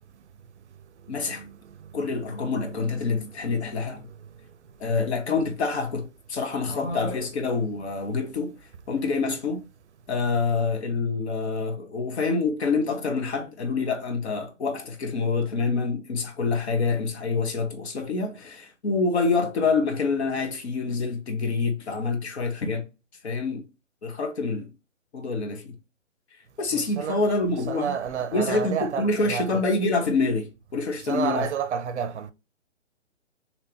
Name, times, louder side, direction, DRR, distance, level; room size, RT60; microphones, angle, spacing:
voice 1, 1.1-1.5 1.9-4.1 4.8-8.5 8.9-9.6 10.1-22.8 23.2-23.6 24.0-24.7 25.1-25.7 26.6-27.9 28.3-31.5, left 4 dB, 55° left, 1.1 m, -26 dB
voice 2, 6.8-7.1 26.7-27.2 27.7-29.6 31.0-32.3, right 7 dB, 65° right, 0.5 m, -30 dB
3.3 x 2.9 x 2.9 m
hypercardioid pair, 140°, 38 cm